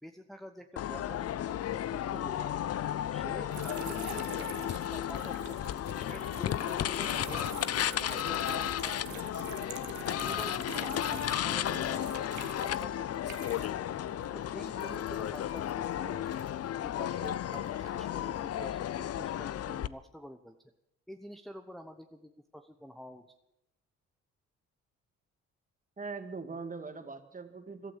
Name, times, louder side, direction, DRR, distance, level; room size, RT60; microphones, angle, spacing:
voice 1, 0.0-2.6 3.1-7.5 7.9-9.6 10.1-13.7 14.3-16.3 16.8-20.6 21.1-23.3, equal, ahead, 6 dB, 1.0 m, -48 dB
sound 1, 0.8-19.9, left 11 dB, 55° left, 0.6 m, -34 dB
sound 2, 3.5-13.9 14.1-16.7 17.2-18.0, right 9 dB, 75° right, 1.5 m, -46 dB
voice 2, 26.0-27.9, right 4 dB, 30° right, 8 dB, 2.0 m, -41 dB
15.0 x 12.5 x 7.5 m, 0.84 s
supercardioid pair, 65°, 29 cm